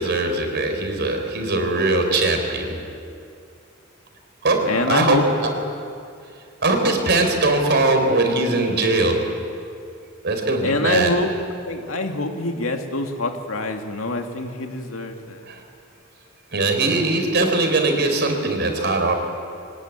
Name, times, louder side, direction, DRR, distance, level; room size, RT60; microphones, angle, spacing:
voice 1, 0.0-2.8 4.4-5.5 6.6-9.3 10.2-11.1 15.4-15.6 16.5-19.1, right 2 dB, 55° right, 4 dB, 4.2 m, -21 dB
voice 2, 4.7-5.2 10.6-11.3 11.6-15.4, left 2 dB, 90° left, 4 dB, 2.3 m, -25 dB
23.5 x 19.5 x 9.6 m, 2.4 s
head